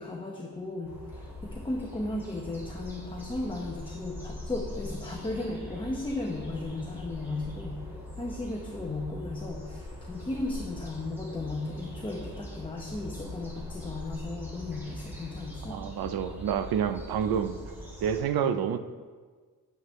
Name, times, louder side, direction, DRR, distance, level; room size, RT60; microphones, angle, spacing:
voice 1, 0.0-7.8 8.2-15.8, left 2 dB, 15° left, -1 dB, 0.9 m, -35 dB
sound 1, 0.8-18.2, left 1 dB, 5° right, 2.4 m, -42 dB
voice 2, 15.7-17.6 18.0-18.8, right 8 dB, 70° right, 10 dB, 0.6 m, -28 dB
9.5 x 8.6 x 3.2 m, 1.5 s
cardioid pair, 130°, 37 cm